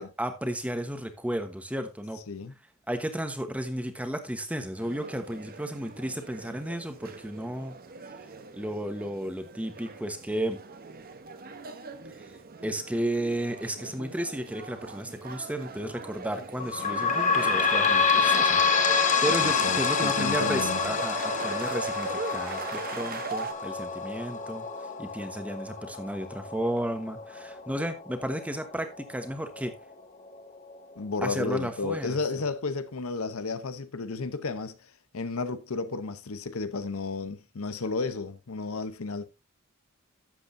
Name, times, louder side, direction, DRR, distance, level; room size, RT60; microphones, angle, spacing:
voice 1, 0.0-2.2 2.9-7.8 8.5-10.6 12.6-18.6 18.9-24.7 25.0-29.7 31.2-32.2, right 1 dB, 5° right, 1.1 m, -33 dB
sound 1, 4.8-23.5, right 4 dB, 45° right, 1.0 m, -40 dB
sound 2, 16.6-29.8 30.3-30.4 30.7-30.8 31.6-31.7, left 5 dB, 35° left, 1.2 m, -27 dB
voice 2, 19.2-20.8 31.0-34.7 35.1-39.3, left 4 dB, 85° left, 0.8 m, -33 dB
12.0 x 8.0 x 2.7 m
head